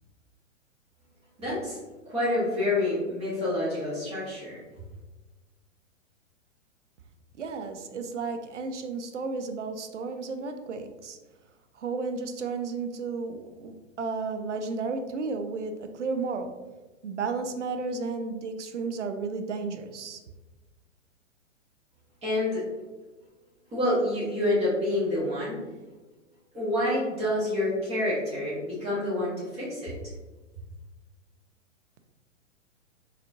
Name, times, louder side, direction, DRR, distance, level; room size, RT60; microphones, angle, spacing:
voice 1, 1.4-1.8 2.0-4.5 22.2-22.7 23.7-25.6 26.5-30.0, left 1 dB, 15° right, -8 dB, 1.2 m, -27 dB
voice 2, 7.4-11.2 11.8-16.5 17.0-20.2, right 4 dB, 70° right, 7 dB, 0.5 m, -33 dB
4.0 x 3.0 x 2.6 m, 1.2 s
figure-of-eight pair, 110°, 37 cm